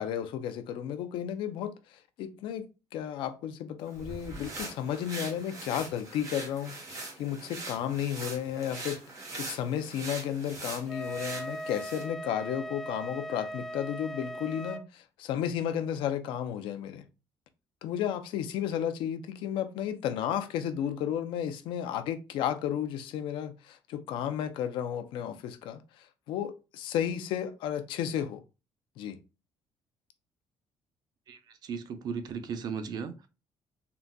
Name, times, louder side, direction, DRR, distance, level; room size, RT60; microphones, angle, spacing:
voice 1, 0.0-17.0 17.8-28.4 29.0-29.2, left 9 dB, 85° left, 0.4 m, -33 dB
sound 1, 3.9-12.1, right 2 dB, 40° right, 1.1 m, -42 dB
Wind instrument woodwind instrument, 10.9-14.8, equal, 5° left, 0.3 m, -39 dB
voice 2, 31.3-33.3, right 6 dB, 55° right, 0.5 m, -36 dB
3.8 x 2.2 x 2.3 m
cardioid pair, 135°, 8 cm